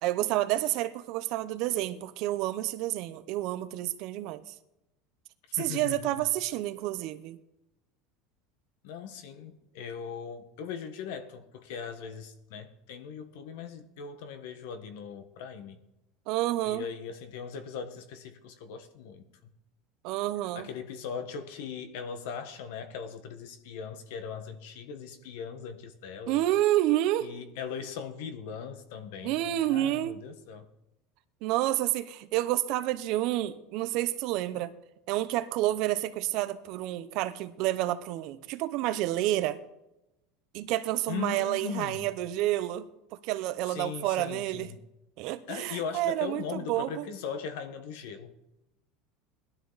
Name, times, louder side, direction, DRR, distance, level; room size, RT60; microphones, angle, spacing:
voice 1, 0.0-4.5 5.6-7.4 16.3-16.8 20.0-20.7 26.3-27.3 29.2-30.2 31.4-34.7 35.1-39.6 40.5-42.9 43.2-44.7 45.2-47.1, right 15 dB, 45° right, 0.7 m, -29 dB
voice 2, 5.5-6.3 8.8-15.8 16.6-19.3 20.5-26.4 27.2-30.7 41.1-42.1 43.7-44.8 45.5-48.3, left 7 dB, 65° left, 1.4 m, -39 dB
19.5 x 12.0 x 4.1 m
cardioid pair, 180°, 0 cm